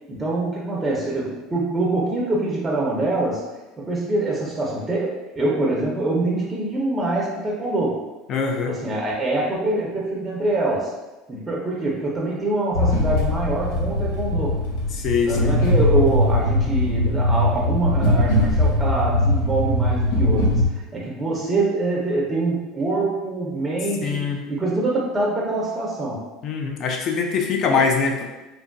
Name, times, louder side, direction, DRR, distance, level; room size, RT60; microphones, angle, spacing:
voice 1, 0.1-3.4 3.8-8.0 8.7-10.9 11.3-14.6 15.2-26.2, right 2 dB, 15° right, -3 dB, 0.5 m, -24 dB
voice 2, 8.3-8.7 14.9-15.6 24.0-24.4 26.4-28.2, left 5 dB, 45° left, 3 dB, 0.4 m, -23 dB
sound 1, 12.7-20.7, left 1 dB, 85° left, 0.6 m, -20 dB
3.0 x 2.5 x 2.2 m, 1.1 s
supercardioid pair, 120°, 0 cm